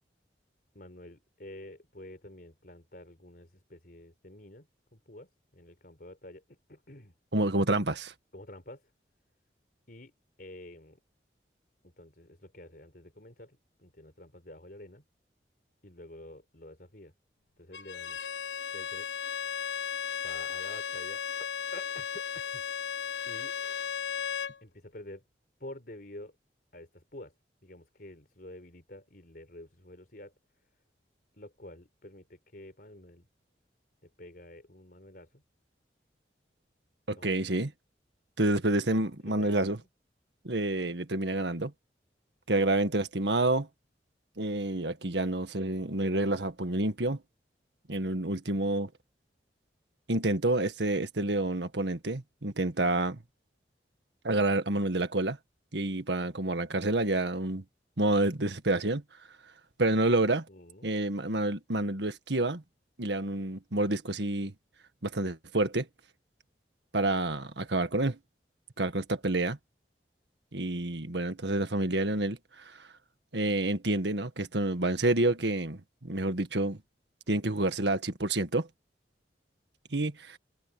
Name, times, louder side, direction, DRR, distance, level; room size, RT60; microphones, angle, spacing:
voice 1, 0.7-7.1 8.3-8.9 9.9-10.1 10.4-11.0 11.8-15.0 15.8-17.1 17.6-18.2 18.7-19.1 20.2-22.6 23.3-23.5 24.6-25.2 25.6-26.3 26.7-27.3 27.6-30.3 31.4-33.3 34.0-35.4 37.1-37.3 39.2-39.6 60.5-60.9, left 1 dB, 55° left, 4.2 m, -49 dB
voice 2, 7.3-8.1 37.1-37.7 38.4-39.8 40.4-41.7 42.5-43.7 44.4-47.2 47.9-48.9 50.1-53.2 54.2-55.4 55.7-57.6 58.0-59.0 59.8-60.5 60.8-62.6 63.0-64.5 65.0-65.9 66.9-68.2 68.8-69.6 70.5-72.9 73.3-76.8 77.3-78.7 79.9-80.4, right 2 dB, 80° right, 1.8 m, -28 dB
Bowed string instrument, 17.7-24.6, left 7 dB, 85° left, 1.1 m, -35 dB
open air
head